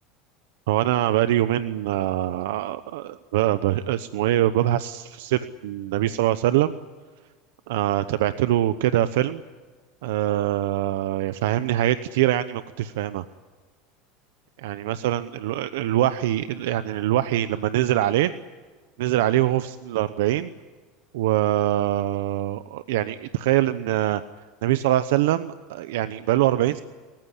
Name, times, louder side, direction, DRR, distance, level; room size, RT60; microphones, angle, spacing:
voice 1, 0.7-6.7 7.7-9.4 10.0-13.2 14.6-18.3 19.0-20.5 21.1-24.2 24.6-26.8, right 13 dB, 85° right, 13 dB, 0.9 m, -23 dB
27.5 x 15.0 x 10.0 m, 1.4 s
supercardioid pair, 120°, 0 cm